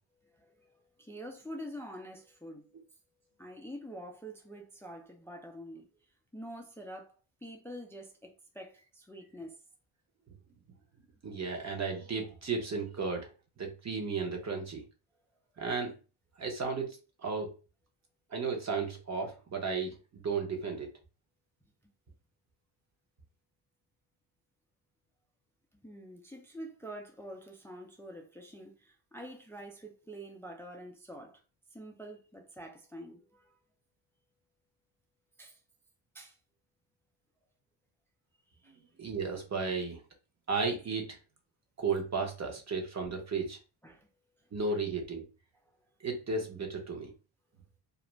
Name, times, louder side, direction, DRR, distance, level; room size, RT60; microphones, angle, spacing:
voice 1, 0.2-2.7 3.4-5.9 6.3-7.1 7.4-9.5 25.8-31.4 31.7-33.6 35.4-35.6 36.1-36.4 38.6-38.8 43.8-44.1 44.4-44.5, equal, 5° left, 0.4 m, -46 dB
voice 2, 11.2-13.3 13.6-14.8 15.6-15.9 16.4-17.5 18.3-20.0 20.2-20.9 38.7-40.0 40.5-41.2 41.8-43.6 44.5-45.2 46.0-47.1, right 4 dB, 35° right, 0.8 m, -34 dB
2.5 x 2.1 x 3.0 m
cardioid pair, 95°, 48 cm